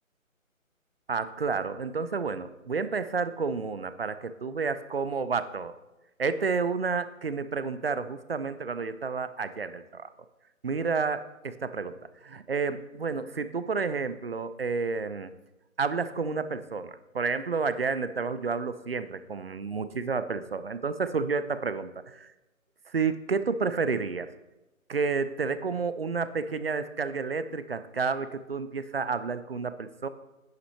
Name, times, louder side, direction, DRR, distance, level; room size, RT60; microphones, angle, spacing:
voice 1, 1.1-5.7 6.2-10.1 10.6-15.3 15.8-22.3 22.9-24.3 24.9-30.1, right 5 dB, 45° right, 13 dB, 0.4 m, -30 dB
10.0 x 5.7 x 4.3 m, 1.0 s
hypercardioid pair, 165°, 41 cm